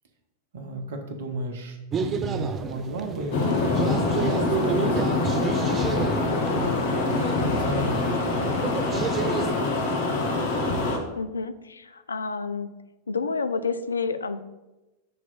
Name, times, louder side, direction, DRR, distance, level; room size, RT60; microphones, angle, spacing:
voice 1, 0.5-5.3 6.4-8.7 9.6-9.7, right 2 dB, 55° right, 5 dB, 0.9 m, -34 dB
sound 1, 1.9-9.5, right 6 dB, 25° right, 0.4 m, -31 dB
sound 2, 3.3-11.0, left 3 dB, 55° left, 1.0 m, -25 dB
voice 2, 11.1-12.7 13.1-14.4, left 4 dB, 75° left, 11 dB, 0.3 m, -29 dB
5.8 x 3.1 x 5.7 m, 1.0 s
figure-of-eight pair, 90°, 0 cm